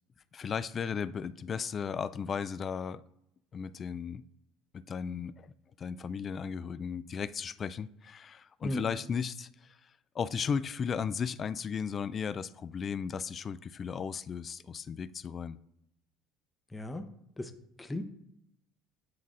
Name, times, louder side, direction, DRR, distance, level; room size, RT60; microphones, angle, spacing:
voice 1, 0.3-3.0 3.5-4.3 4.7-5.5 5.8-9.8 10.1-15.6, left 6 dB, 40° left, 0.3 m, -35 dB
voice 2, 16.7-17.0 17.4-17.5 17.8-18.0, left 1 dB, 15° left, 0.7 m, -35 dB
9.4 x 4.1 x 2.5 m
supercardioid pair, 80°, 0 cm